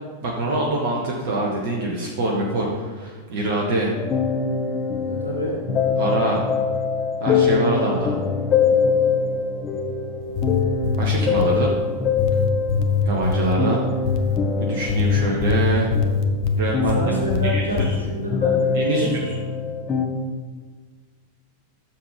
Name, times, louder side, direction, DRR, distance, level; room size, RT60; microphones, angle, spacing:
voice 1, 0.2-3.9 6.0-6.4 7.2-8.2 11.0-11.7 13.0-13.8 14.6-15.9 16.6-16.9 17.4-17.9 18.7-19.1, right 2 dB, 50° right, -2 dB, 1.5 m, -24 dB
sound 1, 4.0-20.1, left 5 dB, 30° left, 1.2 m, -24 dB
voice 2, 5.0-5.6 16.9-19.5, right 1 dB, 85° right, -5 dB, 3.3 m, -28 dB
sound 2, 10.2-11.6 12.2-13.6 14.0-14.4 14.9-17.0 17.3-17.9, left 6 dB, 45° left, 0.9 m, -22 dB
13.0 x 7.3 x 3.5 m, 1.4 s
figure-of-eight pair, 90°, 0 cm